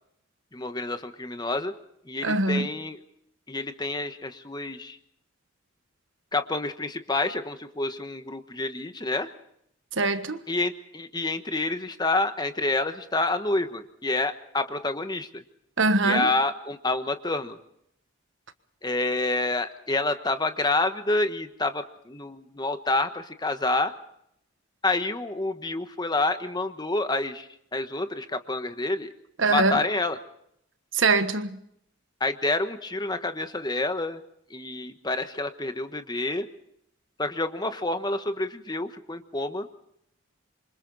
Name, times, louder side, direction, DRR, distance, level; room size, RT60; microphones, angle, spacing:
voice 1, 0.5-1.7 2.1-3.0 3.5-5.0 6.3-9.3 10.5-15.4 16.0-17.6 18.8-23.9 24.8-29.1 29.5-30.2 32.2-34.2 34.5-36.5 37.2-39.7, left 2 dB, 20° left, 1.3 m, -28 dB
voice 2, 2.2-2.7 10.0-10.4 15.8-16.3 29.4-29.8 30.9-31.6, right 3 dB, 60° right, 1.4 m, -23 dB
28.0 x 25.0 x 4.1 m
head